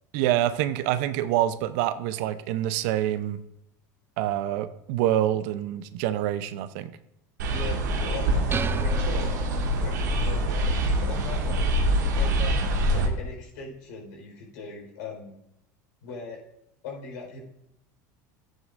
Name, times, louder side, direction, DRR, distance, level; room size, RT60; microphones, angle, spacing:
voice 1, 0.1-3.4 4.2-7.0, right 12 dB, 70° right, 12 dB, 0.7 m, -26 dB
sound 1, 7.4-13.1, right 1 dB, 85° right, 1.7 m, -25 dB
voice 2, 7.5-11.7 12.2-12.6 12.9-15.3 16.0-16.4 16.8-17.4, left 4 dB, 80° left, 0 dB, 4.4 m, -40 dB
sound 2, 8.5-10.1, right 6 dB, 25° right, 0.5 m, -33 dB
14.0 x 9.2 x 2.6 m, 0.82 s
hypercardioid pair, 95°, 9 cm